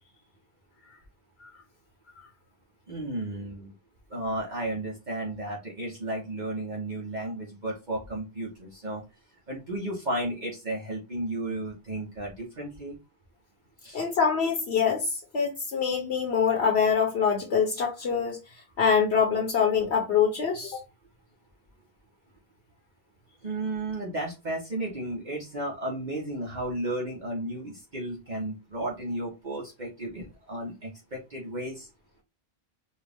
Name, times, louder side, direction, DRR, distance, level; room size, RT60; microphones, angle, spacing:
voice 1, 2.9-3.7 4.1-9.0 9.5-13.0 13.8-14.0 23.4-31.9, right 1 dB, 45° right, 1.2 m, -33 dB
voice 2, 13.9-18.4 18.8-20.8, left 6 dB, 75° left, 1.2 m, -25 dB
4.5 x 2.3 x 3.5 m
omnidirectional pair, 1.1 m